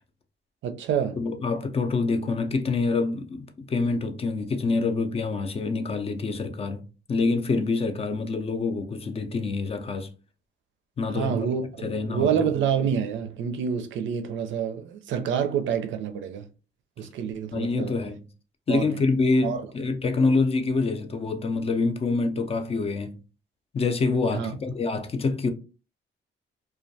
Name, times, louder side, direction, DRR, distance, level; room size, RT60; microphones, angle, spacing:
voice 1, 0.6-1.2 11.1-16.5 17.0-17.9 18.7-19.0 19.4-19.6 24.3-24.5, right 8 dB, 75° right, 0.4 m, -27 dB
voice 2, 1.2-10.1 11.0-11.5 11.8-12.5 17.5-18.2 18.7-23.2 23.7-25.5, left 3 dB, 30° left, 0.4 m, -26 dB
2.3 x 2.2 x 2.6 m
cardioid pair, 90°, 20 cm